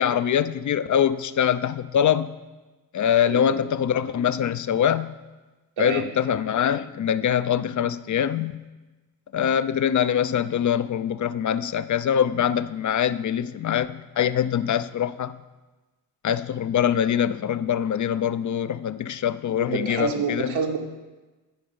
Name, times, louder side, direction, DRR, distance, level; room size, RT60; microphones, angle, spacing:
voice 1, 0.0-2.4 2.9-5.2 5.8-8.6 9.3-15.4 16.2-20.6, left 9 dB, 40° left, 14 dB, 0.5 m, -23 dB
voice 2, 19.6-20.8, right 5 dB, 70° right, 2 dB, 1.6 m, -28 dB
13.5 x 5.0 x 5.5 m, 1.2 s
hypercardioid pair, 45°, 49 cm